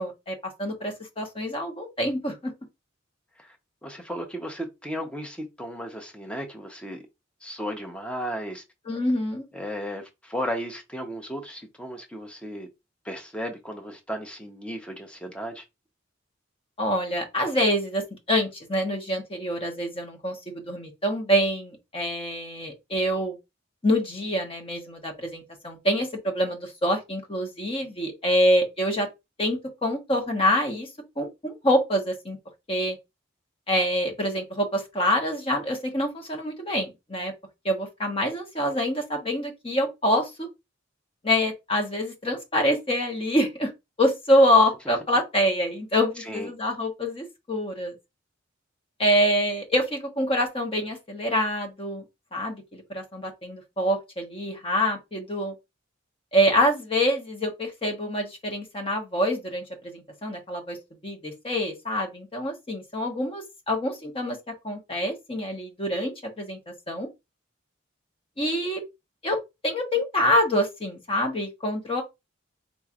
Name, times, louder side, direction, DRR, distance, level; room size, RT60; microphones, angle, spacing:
voice 1, 0.0-2.5 8.9-9.4 16.8-23.4 23.8-29.1 29.4-30.9 31.2-32.4 32.7-33.0 33.7-37.3 37.6-40.5 41.2-43.7 44.0-47.9 49.0-52.0 52.3-55.5 56.3-60.8 61.0-64.4 64.6-67.1 68.4-68.8 69.2-69.4 69.6-72.0, equal, 30° left, 1.0 m, -26 dB
voice 2, 3.8-7.0 7.4-8.6 9.5-12.7 13.0-15.6 46.2-46.5, equal, 5° left, 0.7 m, -35 dB
4.0 x 3.1 x 2.4 m
head